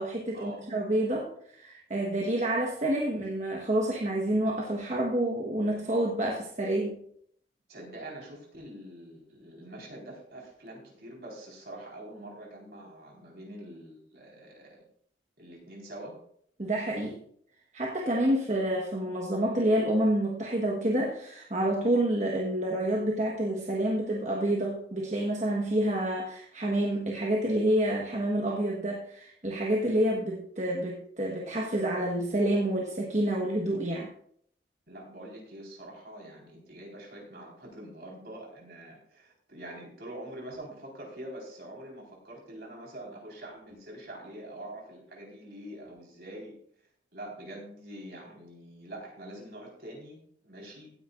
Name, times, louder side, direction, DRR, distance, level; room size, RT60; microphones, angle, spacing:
voice 1, 0.0-7.0 16.6-17.2 17.7-34.1, right 1 dB, 40° right, -1 dB, 1.3 m, -28 dB
voice 2, 7.7-14.8 15.4-16.2 34.9-46.6 47.1-50.9, right 1 dB, 60° right, -1 dB, 4.4 m, -45 dB
17.0 x 9.5 x 2.5 m, 0.64 s
head